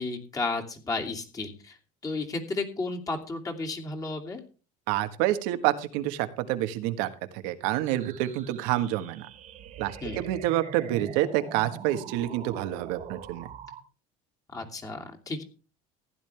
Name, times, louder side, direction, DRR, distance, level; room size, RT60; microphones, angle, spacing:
voice 1, 0.0-1.8 2.0-4.4 10.0-10.2 14.5-15.4, left 3 dB, 20° left, 1 dB, 2.7 m, -33 dB
voice 2, 4.9-7.1 7.3-9.3 9.8-13.5, right 14 dB, 85° right, 10 dB, 1.5 m, -28 dB
sound 1, 7.8-13.8, right 8 dB, 45° right, 2.0 m, -43 dB
15.5 x 10.5 x 3.4 m, 0.35 s
cardioid pair, 130°, 17 cm